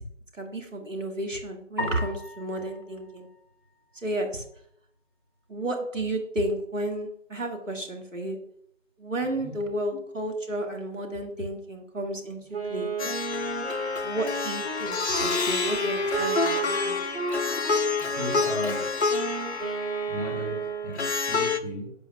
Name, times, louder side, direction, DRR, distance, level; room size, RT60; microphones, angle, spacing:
voice 1, 0.3-3.3 4.0-4.4 5.5-8.4 9.0-12.9 14.0-17.0, right 1 dB, 90° right, 2 dB, 1.9 m, -32 dB
sound 1, 1.8-4.2, left 1 dB, 20° right, 0.8 m, -38 dB
Wind instrument woodwind instrument, 12.5-20.9, right 2 dB, 50° right, 1.8 m, -32 dB
Plucked string instrument, 13.0-21.6, left 4 dB, 60° left, 0.7 m, -29 dB
voice 2, 18.0-18.9 20.1-21.9, equal, ahead, -21 dB, 1.3 m, -35 dB
10.5 x 7.1 x 2.3 m, 0.71 s
figure-of-eight pair, 165°, 37 cm